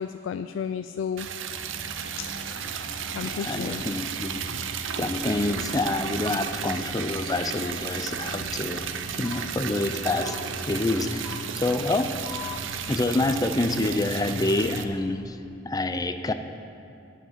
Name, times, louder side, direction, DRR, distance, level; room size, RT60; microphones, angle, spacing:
voice 1, 0.0-1.3 2.2-2.3 3.1-3.8 13.8-14.0, left 7 dB, 90° left, 10 dB, 0.3 m, -32 dB
Liquid, 1.2-14.8, right 7 dB, 85° right, 0.6 m, -34 dB
sound 1, 1.5-15.0, equal, 50° right, 1.7 m, -43 dB
voice 2, 3.2-4.4 5.0-12.6 12.9-15.4 15.6-16.3, left 2 dB, 20° left, 9 dB, 0.4 m, -27 dB
9.1 x 8.0 x 7.4 m, 2.6 s
head